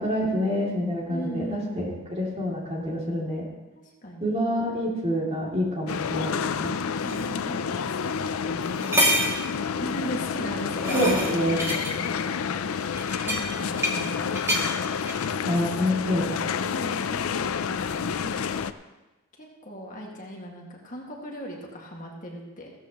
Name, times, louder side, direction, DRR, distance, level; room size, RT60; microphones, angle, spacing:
voice 1, 0.0-3.4 4.2-6.7 10.9-11.6 15.4-16.3, equal, 30° right, -3 dB, 2.6 m, -27 dB
voice 2, 1.1-2.0 3.7-4.4 6.8-9.4 9.8-14.7 16.6-18.7 19.4-22.7, equal, 40° left, -1 dB, 1.9 m, -39 dB
sound 1, 5.9-18.7, left 6 dB, 85° left, 0.5 m, -29 dB
sound 2, 7.1-7.2 8.1-8.2 8.6-9.4 10.4-11.9 12.9-14.1 14.3-14.7 15.1-15.3, right 1 dB, 15° right, 1.6 m, -27 dB
15.5 x 13.0 x 3.0 m, 1.1 s
head